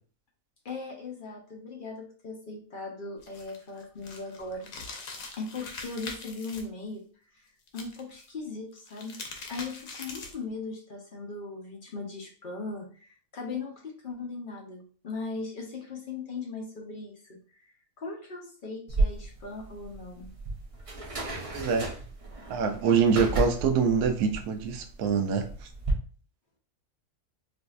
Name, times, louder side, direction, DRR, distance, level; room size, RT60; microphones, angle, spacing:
voice 1, 0.6-4.7 5.4-7.0 7.3-7.4 7.7-9.2 9.5-13.1 13.3-17.4 18.0-20.3, left 3 dB, 50° left, 0.6 m, -38 dB
sound 1, 3.2-6.6 7.7-8.3 8.8-10.5, left 4 dB, 70° left, 1.2 m, -42 dB
sound 2, 18.9-25.9, right 2 dB, 40° right, 0.5 m, -33 dB
voice 2, 21.5-21.9 22.5-25.5, right 6 dB, 90° right, 1.1 m, -25 dB
4.7 x 2.6 x 2.3 m
omnidirectional pair, 1.6 m